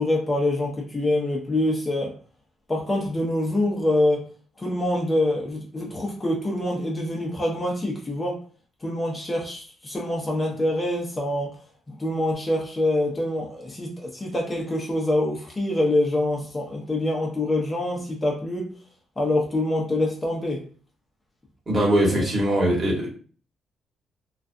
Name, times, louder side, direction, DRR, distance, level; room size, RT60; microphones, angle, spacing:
voice 1, 0.0-2.1 2.7-4.3 4.6-8.4 8.8-11.5 11.9-18.7 19.2-20.6 22.1-22.2, left 1 dB, 20° left, -1 dB, 0.7 m, -25 dB
voice 2, 21.7-23.1, right 1 dB, 35° right, -3 dB, 1.2 m, -21 dB
2.3 x 2.3 x 2.5 m, 0.41 s
cardioid pair, 90°, 0 cm